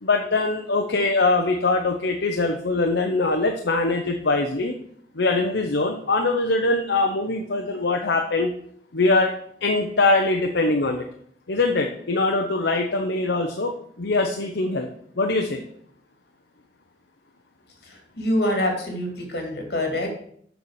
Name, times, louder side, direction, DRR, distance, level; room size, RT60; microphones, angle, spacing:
voice 1, 0.0-4.7 5.1-8.5 8.9-9.3 9.6-11.0 11.5-14.9 15.2-15.6, left 3 dB, 85° left, 3 dB, 0.9 m, -22 dB
voice 2, 17.8-20.1, left 1 dB, 70° left, 2 dB, 2.8 m, -25 dB
7.0 x 5.8 x 6.5 m, 0.65 s
head